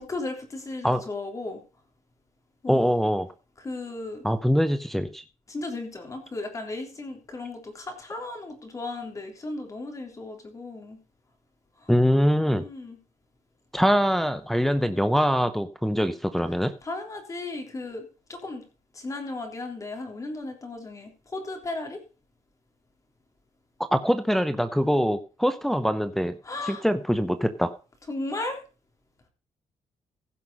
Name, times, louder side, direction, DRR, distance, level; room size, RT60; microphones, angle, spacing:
voice 1, 0.0-1.6 2.6-2.9 3.6-4.2 5.5-11.0 11.8-11.9 12.5-13.0 16.8-18.7 18.9-22.0 26.4-26.8 28.1-28.6, left 2 dB, 25° left, 4 dB, 3.4 m, -35 dB
voice 2, 2.7-3.3 4.2-5.2 11.9-12.7 13.7-16.7 23.9-26.4 26.7-27.7, equal, ahead, 8 dB, 0.8 m, -23 dB
16.0 x 5.9 x 5.5 m, 0.34 s
cardioid pair, 140°, 12 cm